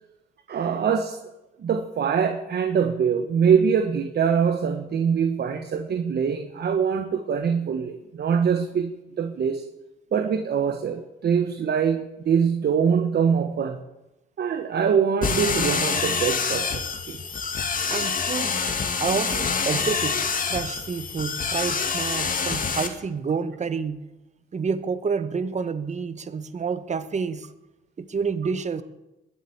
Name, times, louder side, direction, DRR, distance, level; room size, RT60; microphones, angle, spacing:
voice 1, 0.5-1.2 1.6-9.6 10.1-13.8 14.4-17.2, right 7 dB, 55° right, 7 dB, 1.3 m, -23 dB
sound 1, 15.2-22.9, left 5 dB, 45° left, 2.1 m, -26 dB
voice 2, 17.9-18.6 19.0-20.2 20.5-24.0 24.5-27.5 28.0-28.8, right 5 dB, 35° right, 12 dB, 1.2 m, -28 dB
20.5 x 7.9 x 8.6 m, 0.99 s
cardioid pair, 90°, 20 cm